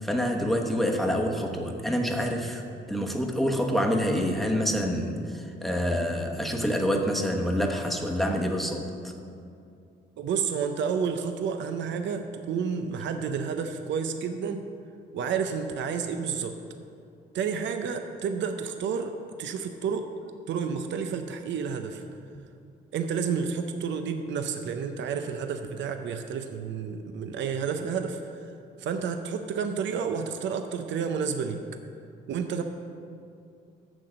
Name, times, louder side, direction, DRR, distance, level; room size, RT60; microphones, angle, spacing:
voice 1, 0.0-2.6 2.9-9.1, equal, ahead, 1 dB, 1.1 m, -27 dB
voice 2, 10.2-14.6 15.1-16.5 17.3-20.1 20.5-22.0 22.9-28.5 28.8-31.6 32.3-32.6, right 6 dB, 65° right, 7 dB, 0.6 m, -30 dB
6.8 x 6.2 x 7.5 m, 2.5 s
cardioid pair, 90°, 20 cm